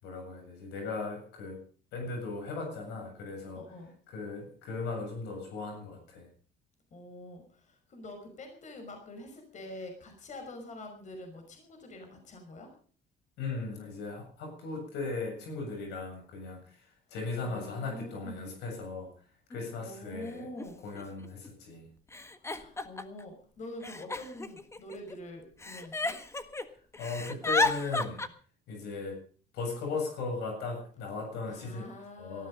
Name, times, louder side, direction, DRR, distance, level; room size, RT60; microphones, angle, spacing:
voice 1, 0.0-1.6 1.9-3.6 4.1-6.3 13.4-19.1 19.5-20.5 20.8-21.9 27.0-28.2 28.7-29.2 29.5-31.9 32.2-32.5, left 3 dB, 85° left, 3 dB, 7.5 m, -37 dB
voice 2, 3.6-3.9 6.9-12.7 17.4-18.5 19.8-20.8 22.4-26.2 31.5-32.5, left 1 dB, 45° left, 5 dB, 5.6 m, -45 dB
Giggle, 19.5-19.6 20.6-20.7 21.0-21.5 22.1-23.2 23.8-25.2 25.6-26.7 26.9-28.3, left 3 dB, 15° left, 1.5 m, -32 dB
18.5 x 14.0 x 5.3 m, 0.42 s
cardioid pair, 110°, 17 cm